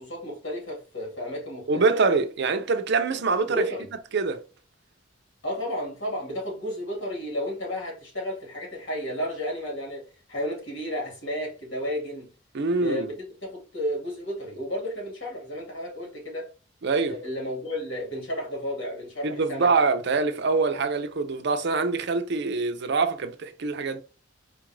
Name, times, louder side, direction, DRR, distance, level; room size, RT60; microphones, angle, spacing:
voice 1, 0.0-1.9 3.5-3.9 5.4-12.3 12.8-16.5 17.1-19.7, equal, 70° left, 1.9 m, -32 dB
voice 2, 1.7-3.6 4.1-4.4 12.5-13.1 16.8-17.2 19.2-24.0, right 4 dB, 60° right, 0.5 m, -24 dB
4.4 x 2.4 x 3.1 m
head